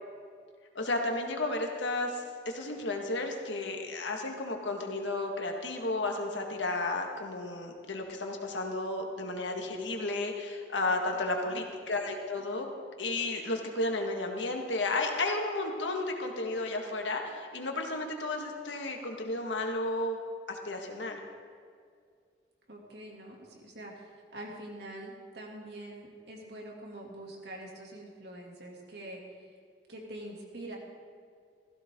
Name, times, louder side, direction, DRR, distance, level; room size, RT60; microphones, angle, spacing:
voice 1, 0.8-12.7 13.0-20.2 20.5-21.2, left 2 dB, 85° left, 2 dB, 1.9 m, -33 dB
voice 2, 10.9-11.6 22.7-29.6 29.9-30.8, right 1 dB, 60° right, -1 dB, 2.7 m, -45 dB
17.0 x 15.0 x 3.8 m, 2.2 s
head